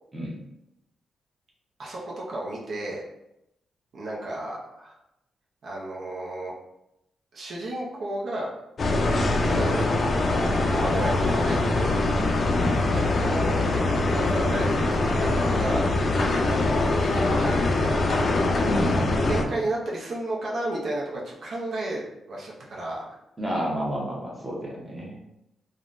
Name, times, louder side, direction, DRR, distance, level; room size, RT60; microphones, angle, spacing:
voice 1, 1.8-3.0 3.9-5.0 5.6-6.5 7.3-8.5 9.3-9.8 10.7-12.0 12.9-13.6 14.1-15.9 16.2-18.0 19.3-23.2, right 1 dB, 60° right, -4 dB, 0.6 m, -33 dB
sound 1, 8.8-19.4, left 2 dB, 40° left, 0.4 m, -23 dB
voice 2, 12.5-12.9 18.6-19.5 23.4-25.2, equal, 15° right, -3 dB, 0.7 m, -31 dB
3.6 x 2.1 x 2.5 m, 0.85 s
wide cardioid pair, 130°, 0 cm